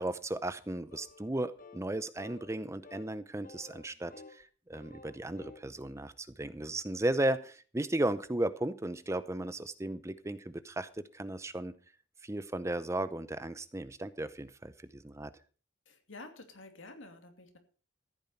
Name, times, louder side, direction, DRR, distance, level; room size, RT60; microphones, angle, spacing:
voice 1, 0.0-11.7 12.2-15.3, right 1 dB, 15° right, 14 dB, 0.6 m, -35 dB
sound 1, 0.9-1.3 1.6-1.9 2.2-2.6 2.8-3.1 3.4-4.4 4.7-5.7, left 3 dB, 45° left, 1.8 m, -53 dB
voice 2, 15.9-17.6, left 2 dB, 80° left, 6 dB, 2.6 m, -50 dB
14.5 x 9.1 x 5.6 m, 0.39 s
head